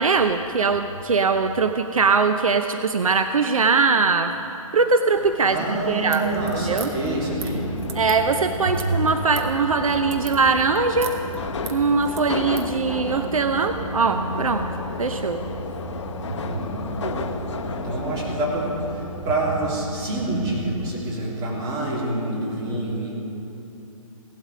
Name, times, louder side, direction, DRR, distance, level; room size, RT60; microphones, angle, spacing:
voice 1, 0.0-4.3 4.7-6.9 7.9-11.1 11.7-14.7 15.0-15.4, right 4 dB, 70° right, 8 dB, 0.7 m, -21 dB
Subway metro underground, 5.2-19.5, left 5 dB, 55° left, 1.0 m, -35 dB
voice 2, 5.4-7.7 8.7-8.8 16.4-23.1, right 2 dB, 20° right, -5 dB, 3.5 m, -27 dB
sound 1, 6.1-12.7, right 6 dB, 50° right, 1.4 m, -40 dB
sound 2, 6.2-20.9, right 1 dB, ahead, 2.6 m, -35 dB
17.5 x 12.0 x 5.0 m, 2.9 s
figure-of-eight pair, 140°, 18 cm